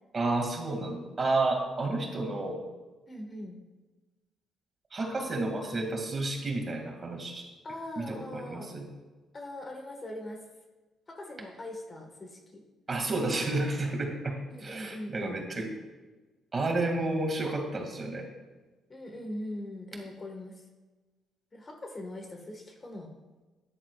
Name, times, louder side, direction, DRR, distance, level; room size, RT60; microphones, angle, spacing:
voice 1, 0.1-2.6 4.9-7.5 8.0-8.9 12.9-15.7 16.5-18.2, right 2 dB, 35° right, 1 dB, 2.4 m, -31 dB
voice 2, 3.1-3.6 7.6-8.7 9.3-10.4 11.1-12.6 14.5-15.4 18.9-20.6 21.5-23.1, left 1 dB, 30° left, 3 dB, 1.7 m, -41 dB
13.0 x 10.5 x 2.5 m, 1.2 s
cardioid pair, 90°, 0 cm